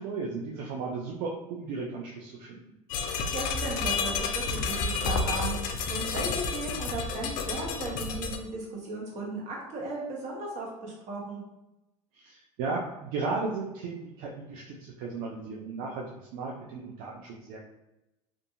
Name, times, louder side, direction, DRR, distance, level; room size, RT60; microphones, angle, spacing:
voice 1, 0.0-2.7 12.1-17.6, right 4 dB, 65° right, -1 dB, 0.5 m, -35 dB
sound 1, 2.9-8.4, left 4 dB, 60° left, 0.4 m, -30 dB
voice 2, 3.1-11.4, right 2 dB, 45° right, -3 dB, 1.1 m, -36 dB
2.6 x 2.5 x 2.5 m, 0.96 s
supercardioid pair, 90°, 16 cm